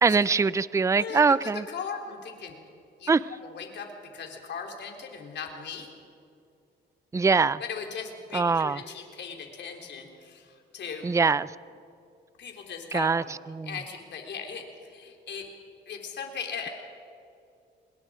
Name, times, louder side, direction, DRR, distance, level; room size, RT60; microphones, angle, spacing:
voice 1, 0.0-1.6 3.1-3.2 7.1-7.6 8.3-8.8 11.0-11.5 12.9-13.7, right 4 dB, 15° right, 18 dB, 0.5 m, -23 dB
voice 2, 1.0-2.5 3.0-3.1 3.4-5.9 7.6-11.1 12.4-13.3 13.6-15.5 15.9-16.7, left 6 dB, 60° left, 3 dB, 3.7 m, -38 dB
26.0 x 21.5 x 5.0 m, 2.4 s
cardioid pair, 90°, 20 cm